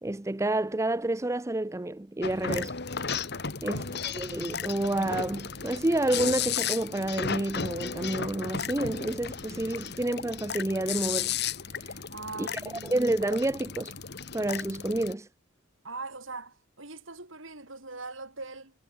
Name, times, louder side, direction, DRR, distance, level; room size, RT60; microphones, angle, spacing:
voice 1, 0.0-2.8 3.6-11.4 11.8-12.0 12.4-12.5 12.8-13.9 14.3-15.3, right 1 dB, 15° right, 0.5 m, -29 dB
sound 1, 2.2-15.1, left 6 dB, 55° left, 1.8 m, -34 dB
voice 2, 3.6-3.9 12.1-13.0 15.8-18.7, right 3 dB, 70° right, 7.8 m, -41 dB
head